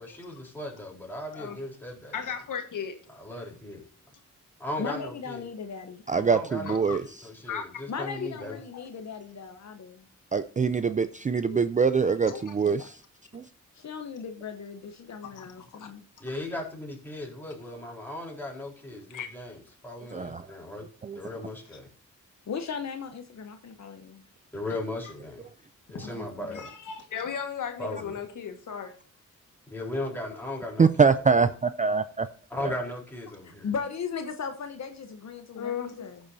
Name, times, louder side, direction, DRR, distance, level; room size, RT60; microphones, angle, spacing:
voice 1, 0.0-2.1 3.1-3.8 4.6-5.4 6.3-8.6 16.2-20.8 21.1-21.9 24.5-25.5 25.9-26.7 27.8-28.1 29.7-31.1 32.5-33.7, left 1 dB, 5° left, -2 dB, 3.9 m, -37 dB
voice 2, 2.1-3.0 6.6-7.0 7.5-7.8 8.2-8.9 11.5-11.6 12.2-12.9 15.2-15.3 19.1-19.3 25.9-26.1 26.5-28.9 35.5-36.1, left 7 dB, 85° left, 6 dB, 1.6 m, -36 dB
voice 3, 4.8-6.4 7.9-10.1 13.7-15.6 15.9-16.0 22.5-24.2 26.0-26.6 33.6-36.2, left 6 dB, 60° left, 6 dB, 0.9 m, -37 dB
voice 4, 6.1-7.0 10.3-12.9 13.3-13.5 20.1-20.4 21.0-21.2 30.8-32.3 32.6-32.7, right 5 dB, 25° right, 12 dB, 0.4 m, -24 dB
14.5 x 7.0 x 2.7 m, 0.40 s
wide cardioid pair, 115°, 31 cm